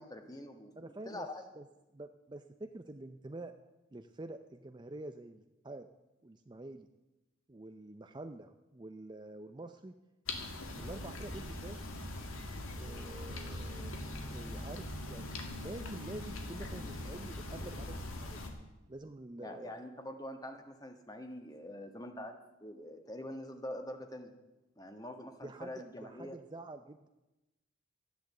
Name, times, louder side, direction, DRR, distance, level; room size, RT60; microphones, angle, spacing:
voice 1, 0.0-0.7 1.0-1.4 19.4-24.3 24.8-26.4, left 1 dB, 20° left, 6 dB, 1.4 m, -45 dB
voice 2, 0.8-1.3 1.6-1.7 1.9-3.6 3.9-5.9 6.2-6.9 7.5-10.0 10.8-11.8 12.7-13.9 14.2-18.4 18.9-19.8 25.4-27.1, right 2 dB, 20° right, 8 dB, 0.5 m, -47 dB
sound 1, 10.3-18.5, left 1 dB, 85° left, 2.1 m, -42 dB
13.0 x 10.5 x 8.0 m, 1.0 s
head